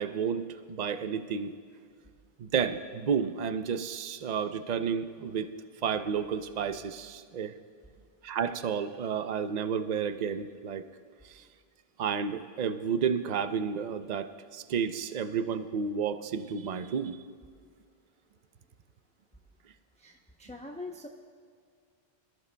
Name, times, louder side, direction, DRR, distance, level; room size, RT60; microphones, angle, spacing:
voice 1, 0.0-1.5 2.4-5.5 5.8-7.6 8.2-10.8 11.2-11.4 12.0-17.2, right 7 dB, 50° right, 10 dB, 0.7 m, -31 dB
voice 2, 20.0-21.1, left 2 dB, 10° left, 1 dB, 0.6 m, -43 dB
26.0 x 14.0 x 2.2 m, 2.2 s
omnidirectional pair, 1.1 m